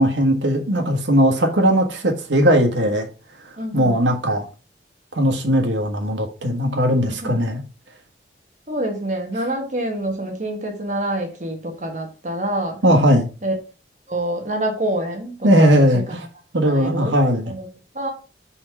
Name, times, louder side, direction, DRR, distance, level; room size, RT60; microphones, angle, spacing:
voice 1, 0.0-3.1 3.7-4.5 5.1-7.6 12.8-13.3 15.4-16.2 16.5-17.5, equal, 85° right, 1.4 m, -18 dB
voice 2, 3.5-3.9 7.0-7.4 8.7-12.8 13.4-13.5 14.1-15.9 16.6-17.1 17.5-17.7 17.9-18.1, right 1 dB, 40° right, 1.4 m, -26 dB
4.7 x 4.3 x 5.7 m
head